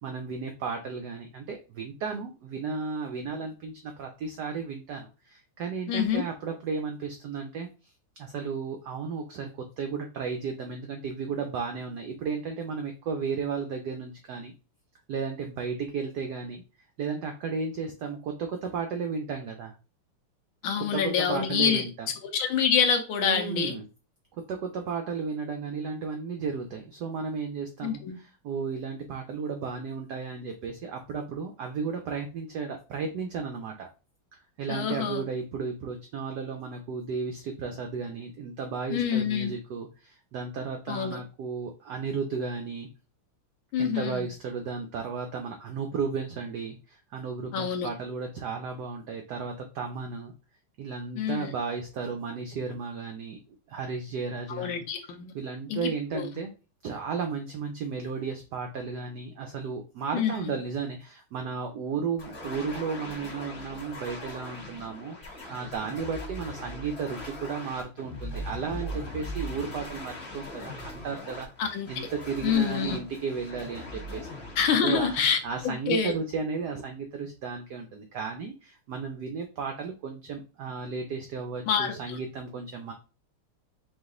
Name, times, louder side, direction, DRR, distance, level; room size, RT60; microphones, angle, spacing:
voice 1, 0.0-7.9 8.2-14.5 15.1-19.7 20.9-22.1 23.2-23.9 24.5-33.9 34.3-42.9 43.8-50.3 50.8-53.4 53.7-54.9 55.3-56.5 56.8-71.5 71.9-74.4 74.8-82.9, right 5 dB, 80° right, 4 dB, 0.9 m, -34 dB
voice 2, 5.9-6.2 20.6-21.8 22.3-23.8 27.8-28.2 34.7-35.2 38.9-39.5 40.9-41.2 43.7-44.3 47.5-47.9 51.1-51.5 54.5-55.3 55.7-56.3 60.1-60.6 71.6-72.1 72.4-73.0 74.6-75.4 75.6-76.1 81.7-82.2, left 7 dB, 70° left, 5 dB, 1.4 m, -27 dB
sound 1, 62.2-76.1, left 1 dB, 35° left, 1.2 m, -40 dB
4.9 x 2.4 x 3.7 m, 0.32 s
omnidirectional pair, 2.4 m